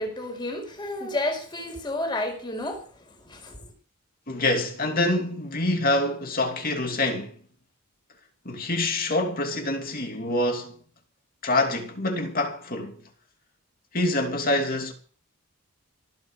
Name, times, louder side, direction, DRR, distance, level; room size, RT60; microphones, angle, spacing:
voice 1, 0.0-2.8 3.2-3.6, left 1 dB, 20° left, 5.0 m, -31 dB
voice 2, 4.3-7.4 8.4-10.7 11.4-13.0 13.9-14.9, left 2 dB, 40° left, 2.8 m, -26 dB
18.5 x 8.7 x 6.5 m
head